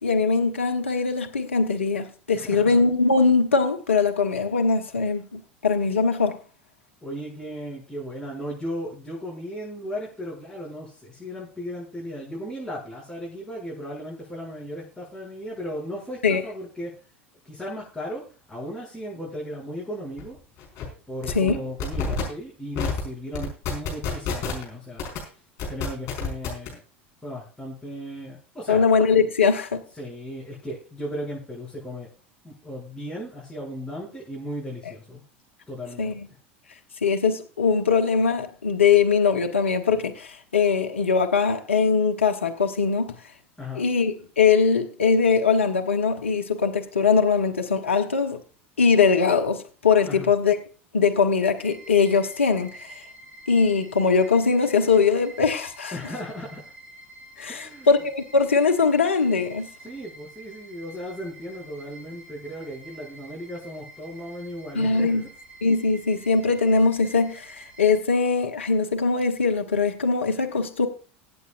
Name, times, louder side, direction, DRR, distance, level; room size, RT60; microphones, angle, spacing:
voice 1, 0.0-6.4 16.2-16.4 21.3-21.5 28.7-29.8 36.0-36.3 37.0-43.2 43.8-48.4 48.8-50.6 50.9-52.9 53.5-55.9 57.4-59.7 64.7-65.3 65.6-70.9, left 5 dB, 85° left, 1.1 m, -21 dB
voice 2, 2.3-2.8 7.0-16.9 17.4-20.4 21.1-25.0 25.6-26.8 27.2-28.8 30.0-32.1 32.4-35.2 35.7-36.1 43.6-43.9 50.1-50.3 55.9-56.6 57.5-57.9 59.8-65.3, equal, 5° left, 6.8 m, -36 dB
sound 1, 20.2-20.3 20.6-20.9 21.2-21.5 21.8-22.2 22.8-23.0 23.3-24.6 25.0-25.2 25.6-26.7, left 6 dB, 50° left, 5.4 m, -28 dB
sound 2, 51.6-68.0, right 1 dB, 25° right, 7.3 m, -48 dB
22.0 x 8.4 x 2.6 m
hypercardioid pair, 80°, 6 cm